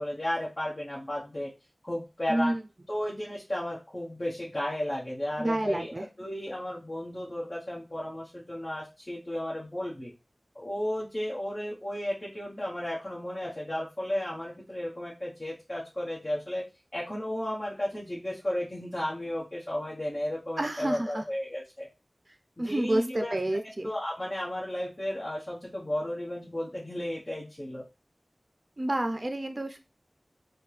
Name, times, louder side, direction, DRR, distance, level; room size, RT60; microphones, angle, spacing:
voice 1, 0.0-1.5 1.8-2.5 2.9-10.1 10.5-16.6 16.9-21.9 22.6-23.6 23.8-27.8, left 1 dB, 40° left, -5 dB, 1.0 m, -34 dB
voice 2, 2.3-2.6 5.4-6.1 20.6-21.2 22.6-23.9 28.8-29.8, right 1 dB, 40° right, 6 dB, 0.4 m, -29 dB
4.3 x 2.2 x 3.2 m, 0.28 s
wide cardioid pair, 50°, 0 cm